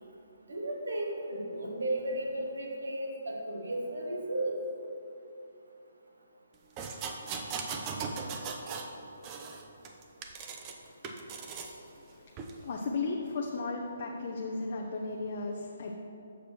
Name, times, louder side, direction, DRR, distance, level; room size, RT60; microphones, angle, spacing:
voice 1, 0.5-4.6, right 1 dB, 80° right, -1 dB, 1.6 m, -34 dB
sound 1, 6.8-8.9 9.2-10.7 11.0-11.7 12.4-12.5, right 5 dB, 25° right, 0.6 m, -38 dB
voice 2, 12.0-12.3 12.6-15.9, left 3 dB, 50° left, 0 dB, 0.6 m, -35 dB
7.1 x 6.0 x 4.4 m, 2.9 s
hypercardioid pair, 150°, 0 cm